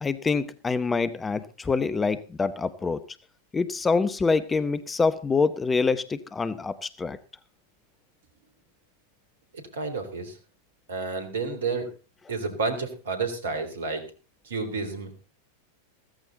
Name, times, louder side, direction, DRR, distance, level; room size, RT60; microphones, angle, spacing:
voice 1, 0.0-3.0 3.5-7.2, left 4 dB, 15° left, 14 dB, 0.8 m, -25 dB
voice 2, 9.5-10.4 10.9-11.9 12.3-14.0 14.4-15.1, right 4 dB, 65° right, 8 dB, 3.5 m, -30 dB
15.5 x 14.0 x 4.0 m, 0.34 s
figure-of-eight pair, 90°, 0 cm